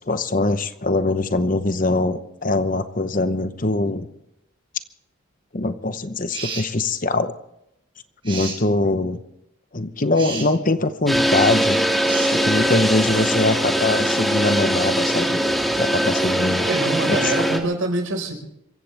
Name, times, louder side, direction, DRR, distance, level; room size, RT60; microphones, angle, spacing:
voice 1, 0.0-4.1 5.5-7.3 8.2-9.2 9.7-11.8 12.3-15.4 15.8-16.7 17.1-17.3, left 2 dB, 40° left, 11 dB, 0.9 m, -22 dB
sound 1, 6.3-6.7 8.2-8.6 10.1-10.5 12.0-12.3, right 4 dB, 25° right, 5.8 m, -31 dB
sound 2, 11.1-17.6, equal, ahead, 1.8 m, -21 dB
voice 2, 16.6-18.3, right 2 dB, 70° right, 4 dB, 4.8 m, -25 dB
26.0 x 15.5 x 3.4 m, 0.81 s
head